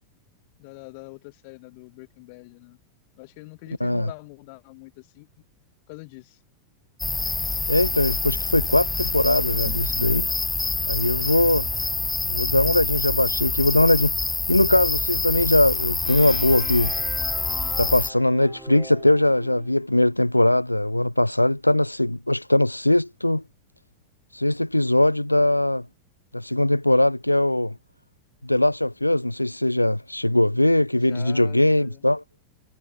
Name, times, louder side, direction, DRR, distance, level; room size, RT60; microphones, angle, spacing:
voice 1, 0.6-2.8 3.1-5.3 5.9-6.4 11.6-11.8 31.0-32.1, left 30 dB, 45° left, 5.2 m, -44 dB
sound 1, 7.0-18.1, left 3 dB, 10° left, 0.5 m, -26 dB
voice 2, 7.7-10.3 10.9-11.7 12.3-16.9 17.8-23.4 24.3-25.8 26.3-27.7 28.4-32.2, left 1 dB, 85° left, 1.5 m, -21 dB
sound 2, 16.1-19.8, right 2 dB, 5° right, 7.8 m, -43 dB
figure-of-eight pair, 90°, 0 cm